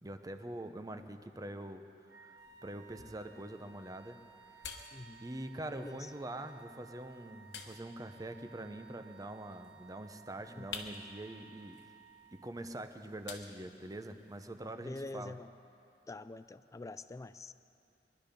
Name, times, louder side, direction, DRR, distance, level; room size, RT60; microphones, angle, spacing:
voice 1, 0.0-1.8 2.2-4.2 5.2-11.8 12.3-15.3, right 1 dB, 20° right, 8 dB, 0.7 m, -44 dB
Wind instrument woodwind instrument, 2.0-12.8, right 6 dB, 80° right, 1.3 m, -58 dB
sound 1, 2.4-14.4, left 5 dB, 85° left, 1.2 m, -53 dB
voice 2, 4.9-5.2 5.7-6.0 10.6-10.7 14.8-15.5 16.1-17.5, left 2 dB, 20° left, 13 dB, 0.3 m, -45 dB
21.5 x 11.5 x 5.2 m, 2.7 s
head